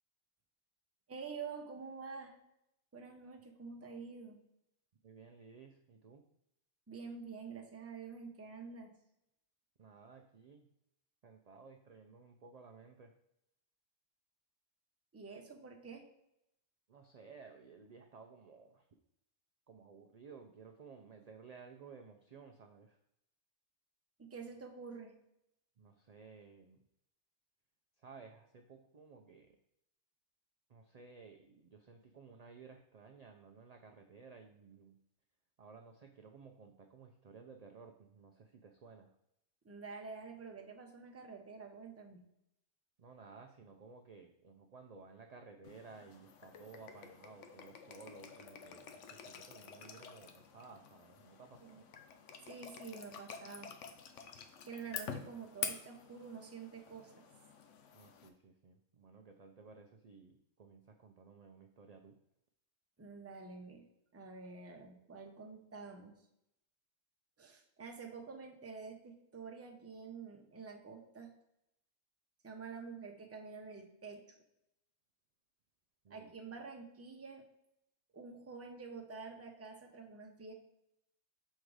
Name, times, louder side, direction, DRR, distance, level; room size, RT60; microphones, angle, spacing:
voice 1, 1.1-2.4 2.9-4.4 6.9-8.9 15.1-16.0 24.2-25.1 39.6-42.2 51.6-51.8 52.4-53.7 54.7-57.1 63.0-63.9 64.1-66.2 67.4-71.3 72.4-74.2 76.1-77.5 78.1-80.5, right 5 dB, 15° right, 2 dB, 0.6 m, -48 dB
voice 2, 5.0-6.3 9.8-10.7 11.2-13.1 16.9-18.9 19.7-23.0 25.8-26.8 28.0-29.6 30.7-35.0 35.6-39.1 43.0-51.9 54.9-55.0 57.9-62.2 76.0-76.3, right 5 dB, 65° right, 4 dB, 0.4 m, -56 dB
sound 1, 45.6-58.3, left 7 dB, 75° left, 1.0 m, -48 dB
6.4 x 3.7 x 4.7 m, 0.80 s
omnidirectional pair, 1.3 m